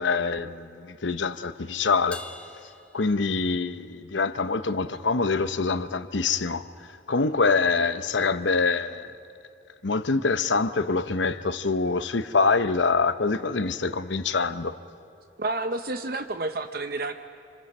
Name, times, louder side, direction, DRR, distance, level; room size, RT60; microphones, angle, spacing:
voice 1, 0.0-2.2 2.9-6.7 7.1-9.1 9.8-14.8, left 4 dB, 80° left, 0.9 m, -25 dB
Crash cymbal, 2.1-3.8, left 2 dB, 5° left, 0.9 m, -45 dB
voice 2, 15.4-17.1, right 2 dB, 55° right, 0.7 m, -30 dB
27.5 x 26.0 x 5.5 m
head